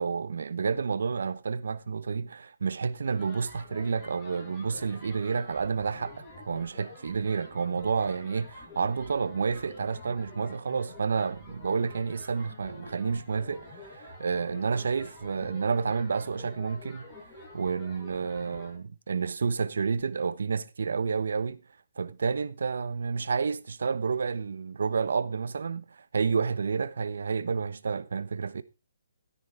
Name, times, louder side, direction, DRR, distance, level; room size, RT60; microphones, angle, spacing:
voice 1, 0.0-17.1 17.5-21.6 22.0-28.6, right 5 dB, 75° right, 1.0 m, -30 dB
sound 1, 3.0-18.8, left 2 dB, 15° left, 6.6 m, -48 dB
13.0 x 9.9 x 3.4 m
hypercardioid pair, 155°, 0 cm